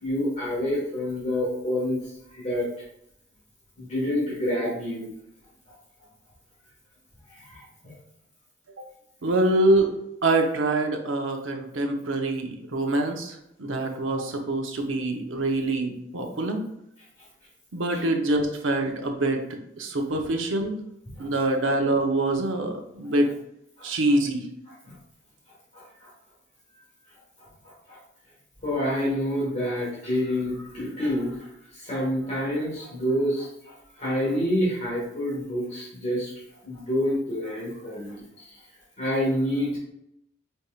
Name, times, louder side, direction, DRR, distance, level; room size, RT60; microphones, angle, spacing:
voice 1, 0.0-2.7 3.8-5.1 7.3-7.9 17.9-18.0 21.2-21.3 23.8-23.9 24.8-24.9 25.7-26.1 27.9-28.0 28.6-36.3 36.6-38.5 39.0-39.8, equal, 35° left, -6 dB, 1.4 m, -28 dB
voice 2, 9.2-9.9 10.2-16.6 17.7-19.4 19.8-20.7 21.2-23.3 23.8-24.5, right 2 dB, 70° right, 4 dB, 0.7 m, -25 dB
5.4 x 3.5 x 2.4 m, 0.79 s
head